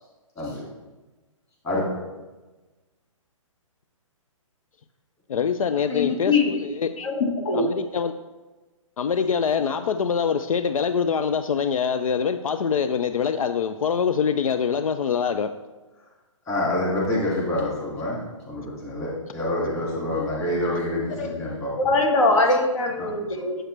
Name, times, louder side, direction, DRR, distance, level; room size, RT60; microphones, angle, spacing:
voice 1, 5.3-7.1 7.5-8.1 9.0-15.5, left 6 dB, 85° left, 10 dB, 0.4 m, -24 dB
voice 2, 5.9-6.5 7.0-7.6 21.2-21.3 21.8-23.6, left 3 dB, 65° left, 2 dB, 1.6 m, -22 dB
voice 3, 16.5-18.2 18.5-21.7 23.0-23.1, left 1 dB, 15° left, -5 dB, 2.2 m, -27 dB
7.5 x 6.4 x 3.3 m, 1.2 s
hypercardioid pair, 150°, 17 cm